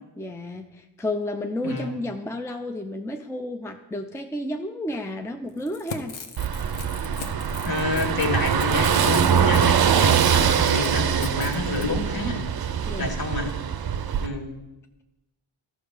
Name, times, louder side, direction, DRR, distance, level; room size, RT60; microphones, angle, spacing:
voice 1, 0.2-6.1 12.9-13.2, left 1 dB, 5° left, 5 dB, 0.6 m, -31 dB
voice 2, 1.6-2.0 7.6-12.5 13.0-13.5 14.2-14.6, left 3 dB, 45° left, 1 dB, 2.0 m, -28 dB
Crackle / Tearing, 5.5-11.9, left 5 dB, 70° left, 1.1 m, -39 dB
Car passing by / Engine, 6.4-14.3, right 8 dB, 50° right, 0.7 m, -23 dB
12.0 x 6.3 x 5.0 m, 1.0 s
cardioid pair, 60°, 49 cm